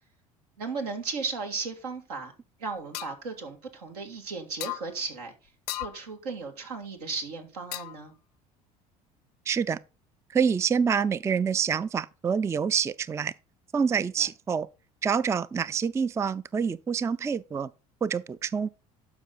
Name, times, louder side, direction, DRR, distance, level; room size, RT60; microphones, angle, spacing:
voice 1, 0.6-2.3 2.6-5.3 5.8-8.1, right 4 dB, 80° right, 1.8 m, -35 dB
sound 1, 2.9-3.2 4.6-4.9 5.7-6.0 7.7-8.1, left 15 dB, 80° left, 0.6 m, -35 dB
voice 2, 9.5-9.8 10.3-13.3 13.7-14.7 15.0-17.7 18.0-18.7, right 6 dB, 15° right, 0.3 m, -27 dB
11.5 x 5.3 x 3.8 m
hypercardioid pair, 65°, 20 cm